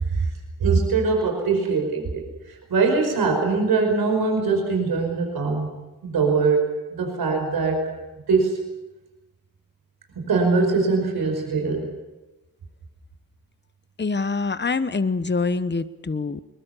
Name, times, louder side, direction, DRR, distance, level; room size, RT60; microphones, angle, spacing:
voice 1, 0.6-2.2 2.5-5.7 6.0-7.8 8.3-8.6 10.2-11.9, right 4 dB, 90° right, 3 dB, 5.1 m, -22 dB
voice 2, 14.0-16.4, left 4 dB, 30° left, 13 dB, 1.1 m, -25 dB
21.5 x 21.5 x 8.4 m, 1.1 s
cardioid pair, 50°, 36 cm